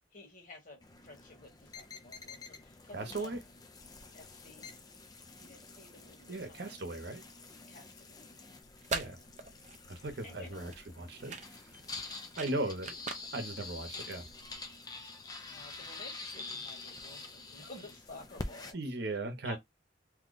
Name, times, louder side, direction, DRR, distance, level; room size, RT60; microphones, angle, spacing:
voice 1, 0.1-3.3 4.1-4.8 5.4-6.8 7.7-8.6 9.0-9.3 10.2-10.8 12.3-12.7 15.4-18.8 19.4-19.6, left 2 dB, 45° left, 1.4 m, -53 dB
sound 1, 0.8-18.7, left 3 dB, 20° left, 0.4 m, -47 dB
voice 2, 2.9-3.4 6.3-7.2 8.9-9.2 9.9-10.7 11.0-11.6 12.4-12.9 13.3-14.2 18.7-19.6, right 2 dB, 60° right, 0.9 m, -37 dB
sound 2, 8.6-14.7, right 4 dB, 40° right, 0.5 m, -43 dB
2.8 x 2.2 x 3.9 m
head